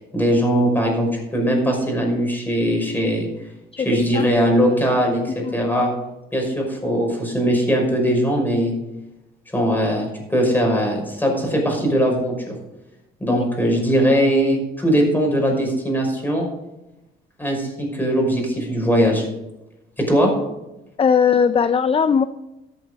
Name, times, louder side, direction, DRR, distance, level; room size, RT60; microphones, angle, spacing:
voice 1, 0.1-3.3 3.8-5.9 6.3-8.7 9.5-12.5 13.2-16.5 17.4-19.2 20.0-20.3, equal, 10° left, 0 dB, 5.7 m, -20 dB
voice 2, 3.9-4.3 5.4-5.5 13.3-13.4 21.0-22.2, left 6 dB, 30° left, 12 dB, 0.5 m, -18 dB
14.0 x 8.4 x 5.2 m, 0.94 s
cardioid pair, 90°, 20 cm